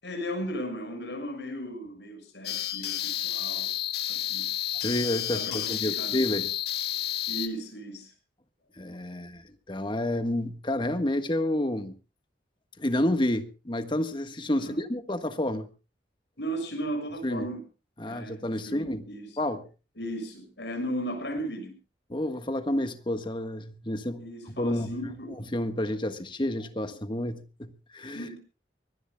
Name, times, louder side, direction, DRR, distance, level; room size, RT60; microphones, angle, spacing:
voice 1, 0.0-3.7 4.1-4.5 5.3-6.4 7.3-8.1 14.6-14.8 16.4-17.6 18.0-19.3 20.0-21.7 24.2-25.3 28.1-28.4, equal, 80° left, 6.6 m, -36 dB
sound 1, 2.4-7.5, left 12 dB, 65° left, 1.6 m, -31 dB
voice 2, 4.8-6.5 8.8-11.9 12.8-15.7 17.2-17.5 18.0-19.0 19.4-19.7 22.1-24.9 25.5-28.3, left 1 dB, 30° left, 1.5 m, -30 dB
24.0 x 18.0 x 2.3 m
head